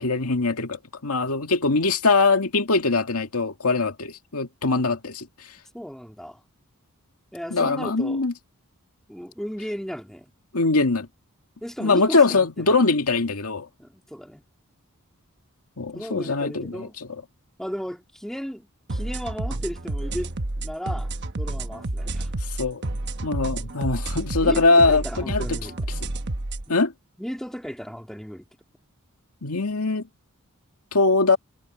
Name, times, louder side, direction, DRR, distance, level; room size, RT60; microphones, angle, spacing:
voice 1, 0.0-5.3 7.5-8.3 10.5-11.1 11.8-13.7 15.8-17.1 22.5-22.8 23.2-25.6 26.7-26.9 29.4-30.0 30.9-31.4, left 3 dB, 80° left, 2.0 m, -22 dB
voice 2, 5.7-6.4 7.3-8.2 9.1-10.3 11.6-12.8 13.8-14.4 15.9-16.9 17.6-21.1 21.4-22.3 24.4-26.0 26.7-26.8 27.2-28.4, equal, ahead, 3.3 m, -35 dB
sound 1, 18.9-26.6, right 2 dB, 50° right, 1.1 m, -30 dB
head